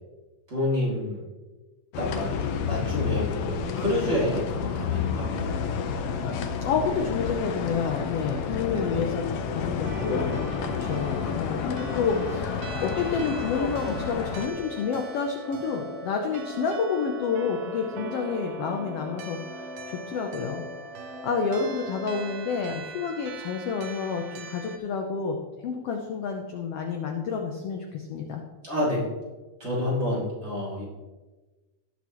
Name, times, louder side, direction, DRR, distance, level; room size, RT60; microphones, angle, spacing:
voice 1, 0.5-1.2 2.0-2.3 2.6-5.7 8.7-8.9 28.6-29.1 29.6-30.8, left 1 dB, 20° right, -7 dB, 2.5 m, -28 dB
sound 1, 1.9-14.5, left 6 dB, 90° left, 1.3 m, -30 dB
sound 2, 5.2-22.5, left 1 dB, 30° left, 1.1 m, -42 dB
voice 2, 6.6-9.2 9.5-20.6 21.0-28.4, left 5 dB, 75° left, 3 dB, 1.4 m, -29 dB
sound 3, 9.8-24.8, right 5 dB, 85° right, 2.5 m, -42 dB
18.5 x 6.3 x 3.1 m, 1.2 s
omnidirectional pair, 3.7 m